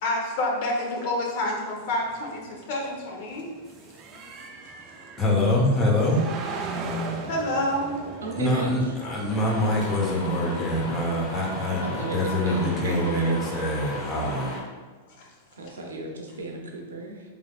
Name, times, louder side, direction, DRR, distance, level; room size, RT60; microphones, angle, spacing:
voice 1, 0.0-3.5 4.1-4.2 7.3-7.9, left 1 dB, 55° left, -1 dB, 0.9 m, -28 dB
sound 1, 1.8-12.5, right 3 dB, 35° right, 0.5 m, -39 dB
voice 2, 5.2-6.2 8.3-14.6, left 1 dB, 20° left, -3 dB, 0.9 m, -25 dB
voice 3, 8.2-8.7 11.7-13.5 15.6-17.2, right 2 dB, 90° right, 1 dB, 0.6 m, -35 dB
sound 2, 9.3-14.6, left 2 dB, 40° left, 1.4 m, -35 dB
3.4 x 3.3 x 2.4 m, 1.4 s
hypercardioid pair, 115°, 0 cm